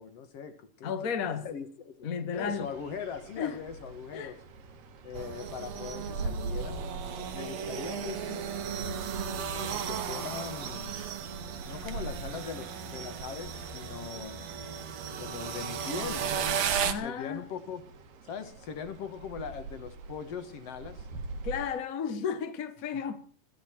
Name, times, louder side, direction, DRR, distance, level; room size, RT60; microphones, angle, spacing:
voice 1, 0.0-2.1 2.3-4.4 5.0-6.8 7.3-8.5 9.3-11.0 11.7-14.5 15.2-17.8 18.2-21.1, left 7 dB, 55° left, 2.0 m, -41 dB
voice 2, 0.8-1.5 2.0-2.7 3.4-3.6 4.1-4.3 16.8-17.5 21.4-23.2, left 7 dB, 75° left, 0.7 m, -33 dB
sound 1, 2.3-21.8, right 3 dB, 75° right, 3.4 m, -44 dB
sound 2, 5.1-16.9, right 7 dB, 60° right, 2.2 m, -35 dB
22.0 x 14.0 x 4.5 m
omnidirectional pair, 3.9 m